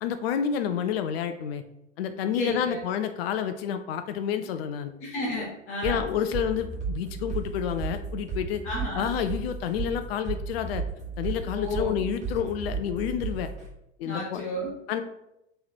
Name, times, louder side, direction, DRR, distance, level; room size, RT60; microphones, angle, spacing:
voice 1, 0.0-1.6 2.0-4.9 5.8-8.6 8.9-10.8 11.2-13.5 14.0-14.4 14.9-15.0, left 8 dB, 55° left, 9 dB, 0.4 m, -29 dB
voice 2, 2.3-2.8 5.0-6.1 8.6-9.1 11.5-12.0 14.0-14.7, left 1 dB, 35° left, -4 dB, 1.1 m, -32 dB
sound 1, 5.8-13.7, right 5 dB, 20° right, 1.5 m, -34 dB
3.7 x 3.2 x 4.3 m, 0.85 s
figure-of-eight pair, 85°, 37 cm